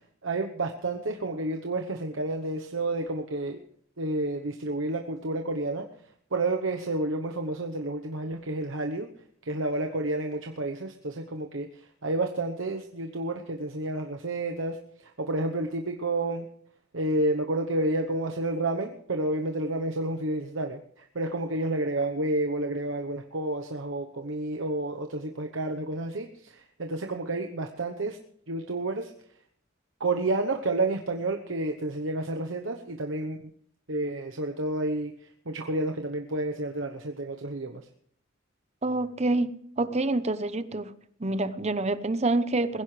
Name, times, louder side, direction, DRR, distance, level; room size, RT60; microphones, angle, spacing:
voice 1, 0.2-3.6 4.0-5.9 6.3-9.1 9.4-16.5 16.9-28.2 28.5-29.1 30.0-33.5 33.9-35.1 35.5-37.9, right 2 dB, 75° right, 4 dB, 1.1 m, -30 dB
voice 2, 38.8-39.5 39.8-40.9 41.2-42.8, right 2 dB, 35° right, 13 dB, 0.8 m, -27 dB
20.5 x 16.0 x 3.3 m, 0.63 s
head